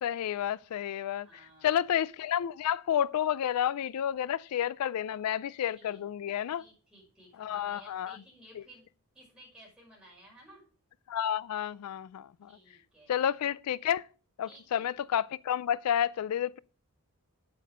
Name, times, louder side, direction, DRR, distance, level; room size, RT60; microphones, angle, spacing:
voice 1, 0.0-1.3 1.6-6.6 7.4-8.2 8.6-8.7 11.1-12.6 13.1-14.1 14.4-16.6, left 10 dB, 85° left, 0.3 m, -30 dB
voice 2, 1.2-2.0 5.8-6.0 6.6-8.9 9.1-10.7 12.5-13.2 14.4-14.8, right 1 dB, 5° right, 5.5 m, -56 dB
8.5 x 8.5 x 5.0 m
head